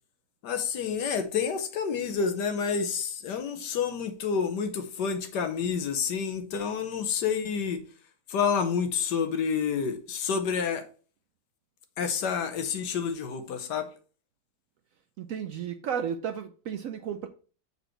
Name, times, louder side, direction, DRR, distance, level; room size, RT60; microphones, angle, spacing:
voice 1, 0.4-7.8 8.3-10.9 12.0-13.9, left 6 dB, 80° left, 1.5 m, -29 dB
voice 2, 15.2-17.3, right 8 dB, 70° right, 0.8 m, -33 dB
6.9 x 4.2 x 4.5 m
omnidirectional pair, 1.8 m